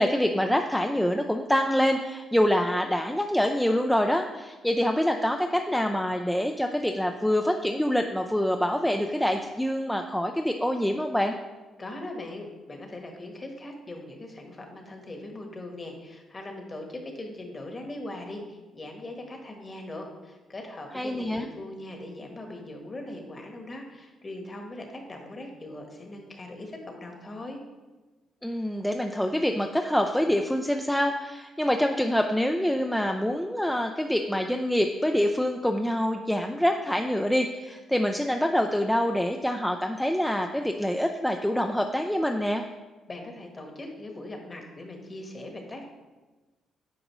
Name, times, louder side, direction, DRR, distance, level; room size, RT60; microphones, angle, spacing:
voice 1, 0.0-11.4 20.9-21.5 28.4-42.6, equal, 5° left, 4 dB, 0.3 m, -26 dB
voice 2, 11.8-27.6 43.1-45.9, left 1 dB, 30° left, 3 dB, 1.3 m, -40 dB
8.9 x 5.0 x 3.0 m, 1.2 s
cardioid pair, 90°, 0 cm